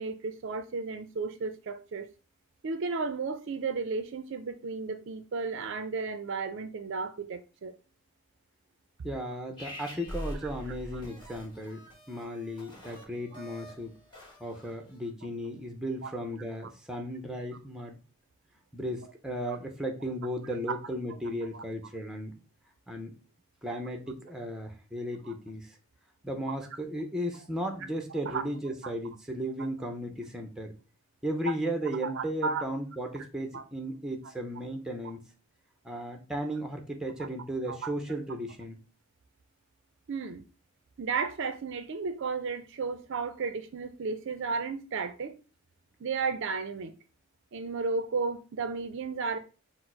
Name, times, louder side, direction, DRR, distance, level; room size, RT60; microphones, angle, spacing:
voice 1, 0.0-2.1 2.6-7.7 10.9-11.0 13.3-13.4 16.0-16.1 19.5-19.6 20.7-20.8 21.5-21.6 25.3-25.4 28.1-28.4 32.0-32.7 33.5-33.6 37.7-37.9 40.1-40.4 41.0-45.3 46.0-46.9 47.5-49.4, right 4 dB, 55° right, 0.4 m, -33 dB
voice 2, 9.0-11.8 12.1-13.9 14.4-18.0 18.7-22.3 22.9-23.2 23.6-25.8 26.2-30.7 31.2-35.3 35.8-38.8, equal, 5° right, 0.5 m, -35 dB
sound 1, 9.6-15.0, equal, 20° left, 1.2 m, -44 dB
4.4 x 2.0 x 4.3 m
head